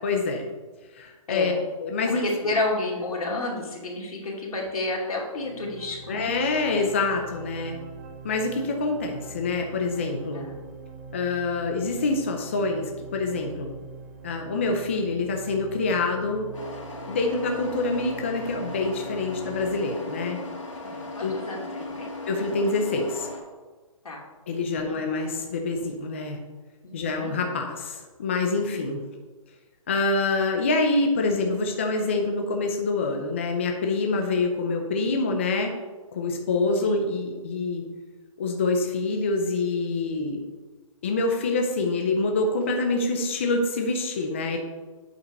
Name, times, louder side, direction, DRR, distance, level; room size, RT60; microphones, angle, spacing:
voice 1, 0.0-0.5 0.9-1.5 1.8-2.3 6.1-7.8 8.2-10.5 11.1-13.7 14.2-16.5 17.1-20.4 21.2-21.4 22.3-23.3 24.5-26.4 26.9-29.0 29.9-35.7 36.1-37.8 38.4-40.4 41.0-44.6, left 3 dB, 20° left, 3 dB, 0.5 m, -26 dB
voice 2, 1.3-1.6 2.1-6.3 10.3-10.5 20.8-22.1 24.0-24.2 24.6-24.9 26.8-27.3 36.8-37.1, left 2 dB, 90° left, -1 dB, 2.7 m, -31 dB
sound 1, 5.3-19.7, right 4 dB, 25° right, 0.5 m, -43 dB
sound 2, 16.5-23.4, left 2 dB, 60° left, 2.4 m, -37 dB
8.3 x 5.1 x 5.2 m, 1.3 s
hypercardioid pair, 180°, 18 cm